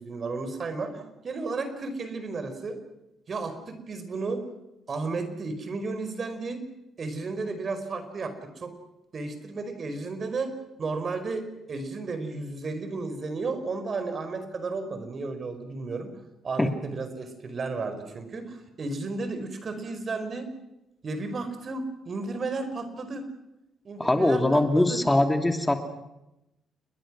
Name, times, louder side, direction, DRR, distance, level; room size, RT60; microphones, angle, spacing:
voice 1, 0.0-2.8 3.3-4.4 4.9-6.6 7.0-8.7 9.1-10.5 10.8-16.1 16.4-20.5 21.0-23.3 23.8-25.0, right 3 dB, 45° right, 9 dB, 4.7 m, -33 dB
voice 2, 24.0-25.8, left 1 dB, 15° left, 6 dB, 2.7 m, -22 dB
29.5 x 21.0 x 6.2 m, 0.91 s
supercardioid pair, 65°, 0 cm